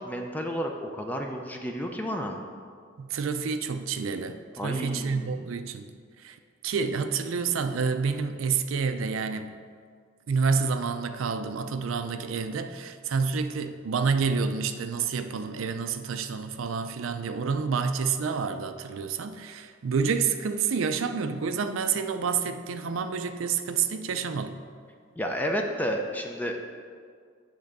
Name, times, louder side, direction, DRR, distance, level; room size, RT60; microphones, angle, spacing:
voice 1, 0.0-2.4 4.6-5.5 25.2-26.6, equal, 10° left, 2 dB, 0.4 m, -31 dB
voice 2, 3.0-5.9 6.2-6.4 6.6-9.6 10.3-24.6, right 5 dB, 70° right, 8 dB, 0.4 m, -28 dB
8.1 x 3.7 x 6.5 m, 2.1 s
head